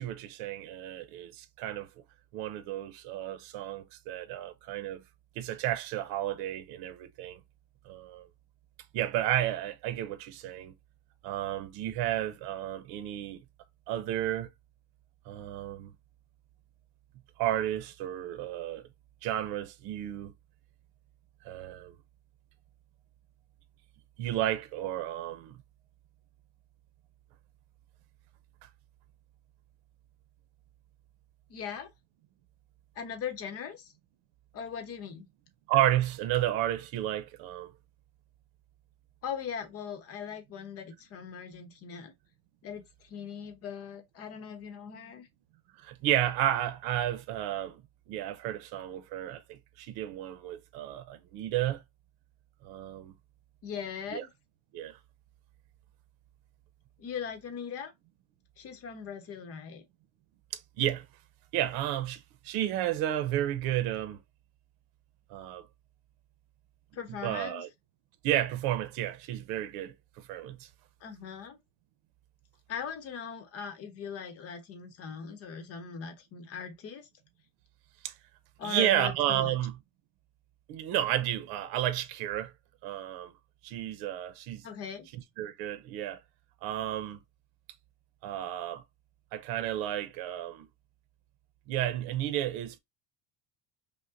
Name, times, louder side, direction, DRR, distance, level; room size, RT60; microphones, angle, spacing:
voice 1, 0.0-1.9 2.3-5.0 5.4-7.4 7.9-8.3 8.9-10.7 11.2-13.4 13.9-14.5 15.3-15.9 17.4-18.9 19.2-20.3 21.4-21.9 24.2-25.6 35.7-37.7 45.8-47.8 48.1-51.8 52.6-53.1 54.1-54.2 54.7-55.0 60.5-61.1 61.5-64.2 65.3-65.7 67.2-67.7 68.2-70.7 78.0-78.1 78.6-79.8 80.7-82.5 82.8-83.3 83.6-84.6 85.4-86.2 86.6-87.2 88.2-88.8 89.3-90.7 91.7-92.8, right 12 dB, 75° right, 0.7 m, -32 dB
voice 2, 31.5-31.9 33.0-33.9 34.5-35.3 39.2-42.1 42.6-45.3 53.6-54.3 57.0-57.9 58.6-59.8 66.9-67.7 71.0-71.6 72.7-77.1 78.6-79.6 84.6-85.1, left 7 dB, 40° left, 0.9 m, -40 dB
5.4 x 2.2 x 2.5 m
cardioid pair, 160°, 37 cm